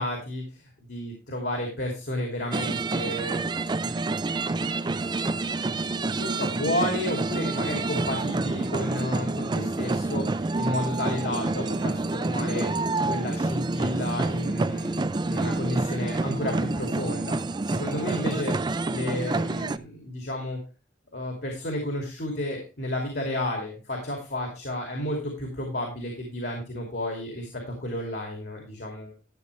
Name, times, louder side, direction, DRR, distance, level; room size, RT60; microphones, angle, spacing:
voice 1, 0.0-3.4 3.8-4.0 6.2-17.4 17.7-20.6 21.1-27.5 27.8-29.1, left 1 dB, 65° left, 1 dB, 2.7 m, -32 dB
sound 1, 2.5-19.8, right 3 dB, 25° right, 0.4 m, -28 dB
12.0 x 8.0 x 3.3 m, 0.31 s
head